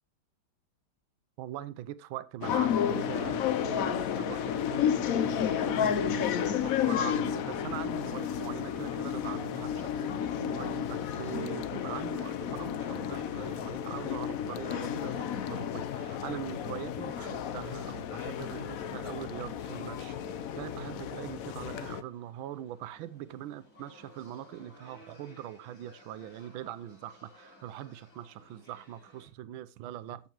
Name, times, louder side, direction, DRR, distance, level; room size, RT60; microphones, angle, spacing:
voice 1, 1.4-20.2 20.6-30.2, right 12 dB, 80° right, 1.4 m, -42 dB
sound 1, 2.4-22.0, left 9 dB, 80° left, 0.7 m, -32 dB
sound 2, 12.3-29.3, equal, 60° left, 5.8 m, -59 dB
14.5 x 5.7 x 2.9 m
omnidirectional pair, 2.3 m